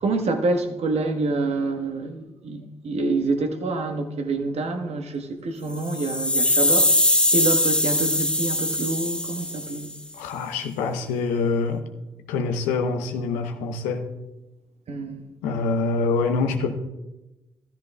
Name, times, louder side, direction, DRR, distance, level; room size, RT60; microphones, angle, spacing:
voice 1, 0.0-9.9 14.9-15.3, right 3 dB, 55° right, 1.3 m, -27 dB
sound 1, 5.7-9.9, left 1 dB, 10° left, 1.1 m, -22 dB
voice 2, 10.1-11.8 12.3-14.0 15.4-16.8, left 4 dB, 80° left, 0.9 m, -25 dB
13.5 x 13.0 x 2.3 m
hypercardioid pair, 40°, 13 cm